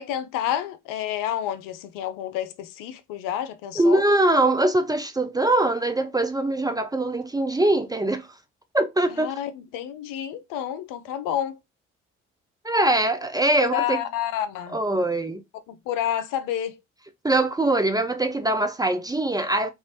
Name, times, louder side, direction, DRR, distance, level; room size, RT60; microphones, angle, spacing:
voice 1, 0.0-4.0 9.2-11.6 13.6-14.8 15.7-16.8, left 10 dB, 65° left, 0.5 m, -29 dB
voice 2, 3.8-8.3 8.7-9.3 12.6-14.0 14.7-15.4 17.2-19.7, right 1 dB, 10° right, 0.4 m, -22 dB
3.0 x 2.4 x 2.8 m
hypercardioid pair, 45°, 35 cm